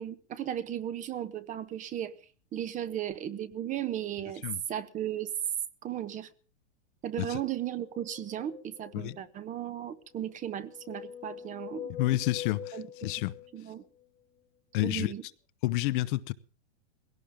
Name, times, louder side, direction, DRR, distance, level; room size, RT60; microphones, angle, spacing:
voice 1, 0.0-2.1 2.5-5.3 5.8-6.3 7.0-11.9 12.7-13.1 13.5-13.8 14.8-15.2, right 11 dB, 20° right, 1.0 m, -36 dB
sound 1, 7.7-9.3 10.2-14.1, left 9 dB, 20° left, 1.6 m, -45 dB
voice 2, 12.0-13.3 14.7-15.1 15.6-16.3, left 17 dB, 45° left, 0.9 m, -29 dB
20.0 x 17.5 x 3.6 m
hypercardioid pair, 140°, 35 cm